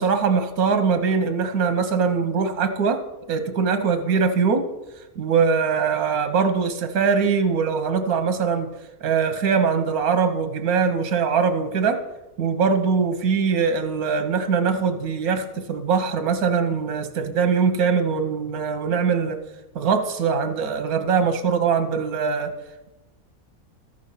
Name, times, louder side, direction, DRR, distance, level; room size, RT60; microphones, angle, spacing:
voice 1, 0.0-3.0 3.3-4.6 5.2-8.7 9.0-12.0 12.4-19.4 19.7-22.5, right 5 dB, 85° right, 8 dB, 1.4 m, -22 dB
13.5 x 6.6 x 5.5 m, 1.0 s
omnidirectional pair, 1.5 m